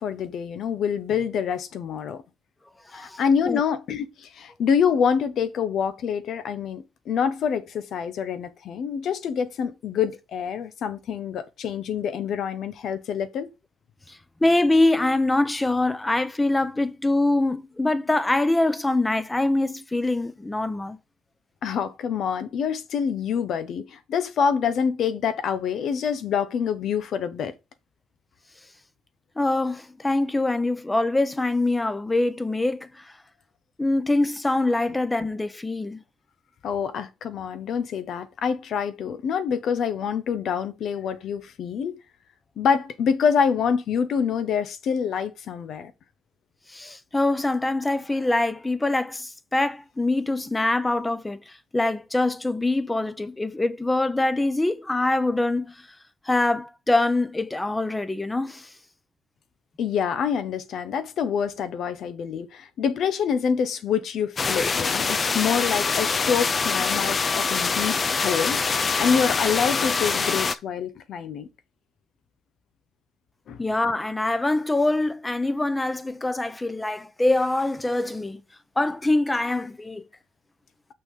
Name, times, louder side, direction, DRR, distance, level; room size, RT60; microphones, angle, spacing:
voice 1, 0.0-2.2 2.9-13.5 21.6-27.5 36.6-42.0 42.6-45.9 59.8-71.5 73.5-73.6, left 7 dB, 70° left, 1.1 m, -26 dB
voice 2, 2.9-3.6 14.1-21.0 29.4-33.1 33.8-36.0 46.7-55.9 56.2-58.7 73.6-78.4 78.8-80.1, left 2 dB, 15° left, 0.9 m, -24 dB
sound 1, 64.4-70.6, left 5 dB, 40° left, 0.5 m, -24 dB
6.8 x 5.9 x 3.9 m
cardioid pair, 90°, 0 cm